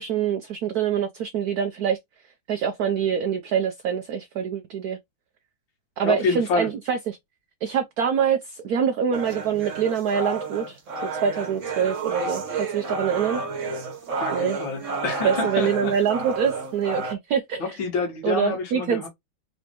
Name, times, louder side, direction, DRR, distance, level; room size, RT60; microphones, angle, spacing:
voice 1, 0.0-2.0 2.5-5.0 6.0-7.2 7.6-10.8 11.1-13.4 14.3-14.6 15.2-17.8 18.2-19.1, right 7 dB, 80° right, 0.8 m, -25 dB
voice 2, 6.0-6.7 14.2-15.9 17.6-19.1, left 4 dB, 75° left, 2.0 m, -27 dB
sound 1, 9.1-17.1, right 3 dB, 45° right, 1.2 m, -31 dB
4.1 x 3.3 x 2.9 m
omnidirectional pair, 2.1 m